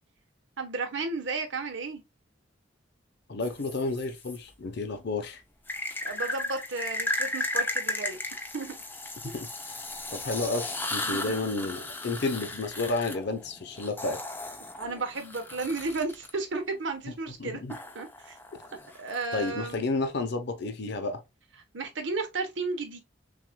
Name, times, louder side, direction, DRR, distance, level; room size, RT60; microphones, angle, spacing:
voice 1, 0.6-2.0 5.8-8.2 8.5-8.7 11.0-11.5 14.8-17.6 17.9-18.4 18.9-19.9 21.7-23.0, right 3 dB, 70° right, 1.0 m, -33 dB
voice 2, 3.3-5.4 9.2-9.3 10.1-14.2 17.4-17.8 19.3-21.2, left 3 dB, 65° left, 0.8 m, -31 dB
sound 1, 3.4-4.4 5.7-16.3 17.7-19.5, left 2 dB, 10° left, 0.6 m, -35 dB
6.1 x 2.6 x 2.2 m
head